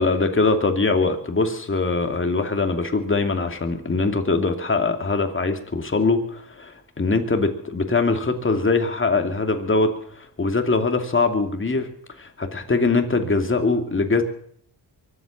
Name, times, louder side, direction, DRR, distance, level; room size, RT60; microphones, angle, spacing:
voice 1, 0.0-11.9 12.2-14.2, left 3 dB, 30° left, 6 dB, 2.6 m, -22 dB
23.5 x 8.4 x 7.2 m, 0.64 s
cardioid pair, 65°, 41 cm